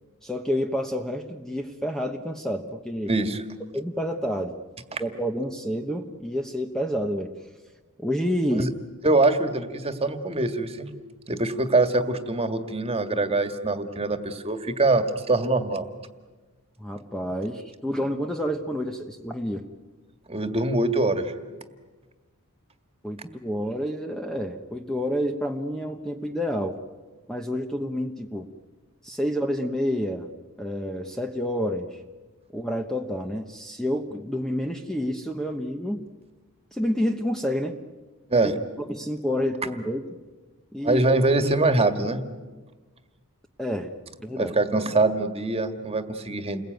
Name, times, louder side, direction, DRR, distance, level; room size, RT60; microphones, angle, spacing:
voice 1, 0.2-3.1 3.7-4.6 5.0-7.3 8.0-8.7 16.8-19.6 23.0-26.8 27.3-28.5 29.0-30.3 30.6-32.0 32.5-36.0 36.7-37.8 38.4-38.5 38.9-40.0 40.7-41.0 43.6-43.9 44.2-44.5, equal, ahead, 4 dB, 1.1 m, -29 dB
voice 2, 3.1-3.4 4.9-5.0 8.5-8.7 9.0-10.9 11.3-15.9 20.3-21.3 38.3-38.5 40.8-42.2 44.3-46.6, right 2 dB, 30° right, 8 dB, 1.9 m, -23 dB
29.5 x 21.5 x 9.3 m, 1.3 s
head